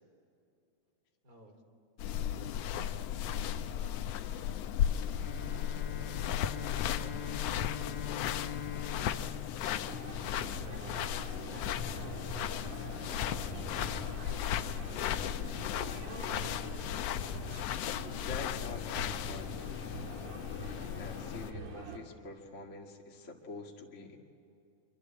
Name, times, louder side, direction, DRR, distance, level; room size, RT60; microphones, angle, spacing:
voice 1, 1.2-1.6 2.3-4.0 5.0-6.2 7.0-8.6 8.9-10.4 11.0-11.7 12.6-14.6 14.9-15.2 15.5-15.9, right 1 dB, 25° right, 4 dB, 3.9 m, -56 dB
sound 1, 2.0-21.5, left 10 dB, 75° left, 1.5 m, -36 dB
Bowed string instrument, 5.1-10.8, left 6 dB, 50° left, 1.4 m, -44 dB
sound 2, 9.9-22.0, right 4 dB, 75° right, 4.1 m, -45 dB
voice 2, 18.0-19.5 20.6-24.2, left 3 dB, 25° left, 0 dB, 2.0 m, -46 dB
26.5 x 24.5 x 8.6 m, 2.5 s
omnidirectional pair, 3.6 m